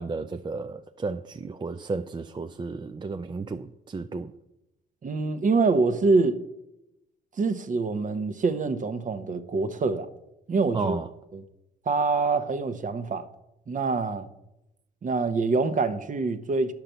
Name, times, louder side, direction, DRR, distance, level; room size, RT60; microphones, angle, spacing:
voice 1, 0.0-4.3 10.7-11.1, right 4 dB, 25° right, 0.4 m, -33 dB
voice 2, 5.0-6.4 7.4-10.1 10.5-11.0 11.3-11.4 11.9-13.3 13.7-14.3 15.0-16.7, right 4 dB, 40° right, 0.9 m, -25 dB
10.5 x 5.8 x 6.8 m
cardioid pair, 90°, 20 cm